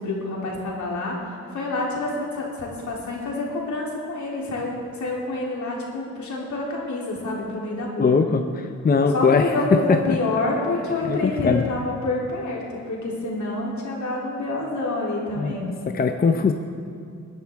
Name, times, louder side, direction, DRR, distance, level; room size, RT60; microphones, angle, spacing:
voice 1, 0.0-8.1 9.1-15.7, left 2 dB, 70° left, -3 dB, 3.2 m, -27 dB
voice 2, 8.0-10.0 11.1-11.6 15.4-15.5 15.9-16.5, left 5 dB, 30° left, 6 dB, 0.6 m, -20 dB
20.0 x 11.0 x 3.5 m, 2.3 s
cardioid pair, 100°, 30 cm